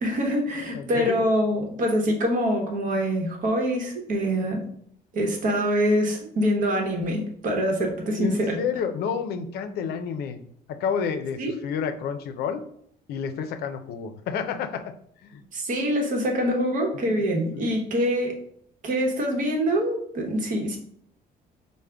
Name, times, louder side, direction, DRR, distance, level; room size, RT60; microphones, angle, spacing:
voice 1, 0.0-4.6 5.1-8.6 11.4-11.5 15.5-18.4 18.8-20.8, equal, 55° right, 1 dB, 0.9 m, -25 dB
voice 2, 0.7-1.2 8.2-10.4 10.7-12.6 13.1-14.9 15.2-15.4 17.1-17.2 17.5-17.7, left 6 dB, 85° left, 9 dB, 0.4 m, -30 dB
4.9 x 2.1 x 3.3 m, 0.66 s
cardioid pair, 155°, 16 cm